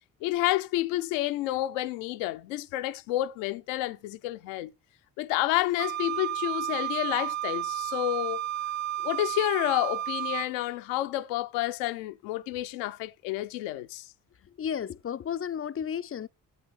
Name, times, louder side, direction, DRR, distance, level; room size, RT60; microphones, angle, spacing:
voice 1, 0.2-4.7 5.2-8.4 9.0-14.1, left 16 dB, 75° left, 0.8 m, -29 dB
Wind instrument woodwind instrument, 5.8-10.5, right 13 dB, 40° right, 0.7 m, -32 dB
voice 2, 14.4-16.3, left 8 dB, 30° left, 0.5 m, -33 dB
9.2 x 7.7 x 3.7 m
hypercardioid pair, 45°, 44 cm